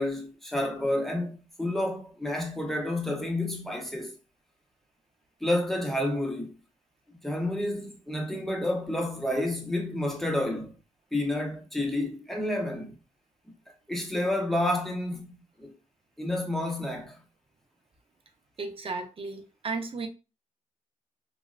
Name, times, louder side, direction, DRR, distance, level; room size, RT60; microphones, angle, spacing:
voice 1, 0.0-4.1 5.4-6.5 7.2-10.7 11.1-12.9 13.9-15.7 16.2-17.2, left 1 dB, ahead, 0.7 m, -30 dB
voice 2, 18.6-20.1, right 4 dB, 40° right, 0.6 m, -34 dB
3.3 x 2.2 x 2.4 m
cardioid pair, 95°, 14 cm